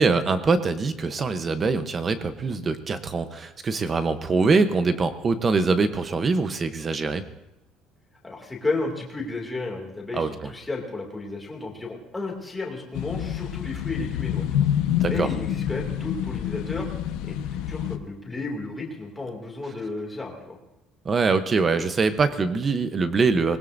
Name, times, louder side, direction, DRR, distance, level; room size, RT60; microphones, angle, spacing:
voice 1, 0.0-7.2 10.1-10.3 15.0-15.3 21.0-23.6, right 4 dB, 20° right, 10 dB, 0.8 m, -23 dB
voice 2, 8.2-14.5 15.1-16.9 17.2-20.6, left 3 dB, 10° left, -1 dB, 2.4 m, -33 dB
sound 1, 12.9-18.0, left 10 dB, 90° left, 1.1 m, -27 dB
25.5 x 20.0 x 2.6 m, 0.92 s
cardioid pair, 175°, 0 cm